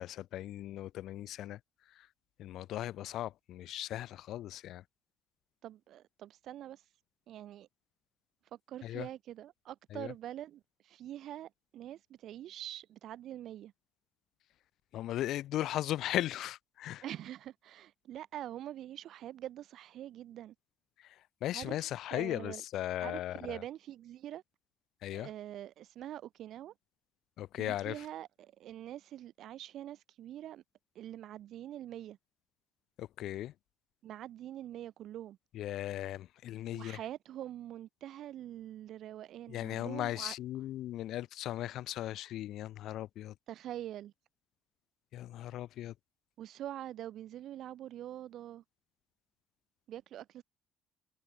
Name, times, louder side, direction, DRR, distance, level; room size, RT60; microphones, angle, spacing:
voice 1, 0.0-1.6 1.9-2.1 2.4-4.8 8.8-9.1 9.9-10.1 14.9-17.0 21.0-23.6 25.0-25.3 27.4-28.1 33.0-33.5 35.5-37.0 39.5-43.3 45.1-45.9, left 13 dB, 65° left, 0.9 m, -37 dB
voice 2, 5.6-6.8 7.3-7.7 8.5-13.7 17.0-20.5 21.5-21.8 22.1-22.6 23.0-24.4 25.1-26.7 27.6-30.6 31.0-32.2 34.0-35.4 36.7-40.3 43.5-44.1 46.4-48.6 49.9-50.4, right 12 dB, 60° right, 3.7 m, -44 dB
cardioid pair, 145°, 0 cm